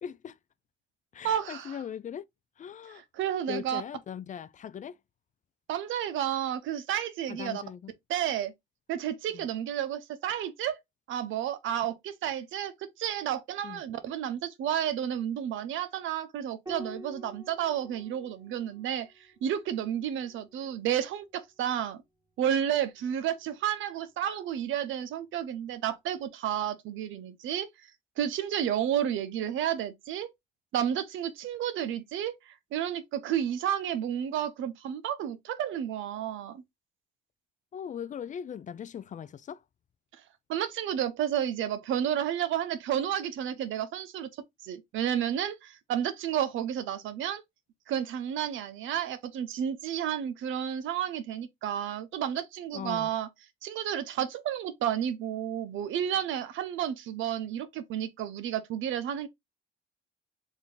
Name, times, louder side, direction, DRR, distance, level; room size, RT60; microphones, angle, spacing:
voice 1, 0.0-0.4 1.1-2.3 2.6-3.0 3.5-5.0 7.3-7.9 9.3-9.5 13.6-13.8 37.7-39.6 52.7-53.1, left 8 dB, 40° left, 0.4 m, -39 dB
voice 2, 1.2-1.8 3.1-3.8 5.7-7.6 8.1-8.5 8.9-10.8 11.1-22.0 22.4-27.7 28.2-30.3 30.7-36.6 40.5-44.3 44.6-47.4 47.9-53.3 53.6-59.3, right 10 dB, 80° right, 0.7 m, -31 dB
Piano, 16.7-21.5 23.1-24.0, equal, 20° right, 1.3 m, -50 dB
3.6 x 2.6 x 3.7 m
cardioid pair, 90°, 20 cm